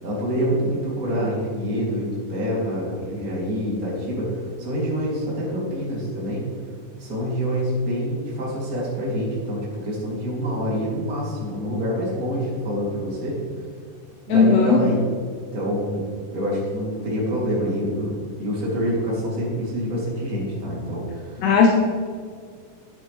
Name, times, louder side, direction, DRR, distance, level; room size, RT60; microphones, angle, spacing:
voice 1, 0.0-6.5 7.0-13.4 14.3-15.0 15.5-18.1 18.4-21.5, equal, 30° right, -6 dB, 1.9 m, -26 dB
voice 2, 14.3-14.8 21.4-21.7, left 5 dB, 80° left, 2 dB, 2.4 m, -16 dB
10.5 x 9.4 x 3.2 m, 2.1 s
omnidirectional pair, 5.6 m